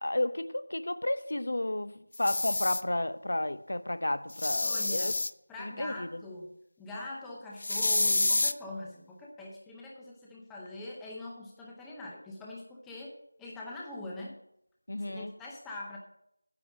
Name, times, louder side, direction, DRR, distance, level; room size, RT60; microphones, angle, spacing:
voice 1, 0.0-5.1 5.6-6.1 14.9-15.3, left 1 dB, 60° left, 0.7 m, -32 dB
sound 1, 2.1-2.8 4.3-5.3 7.6-8.5, left 2 dB, 35° left, 0.4 m, -28 dB
voice 2, 4.6-5.2 5.5-6.5 6.8-14.4 15.1-16.0, left 2 dB, 5° left, 0.6 m, -43 dB
9.7 x 8.9 x 6.3 m
figure-of-eight pair, 180°, 0 cm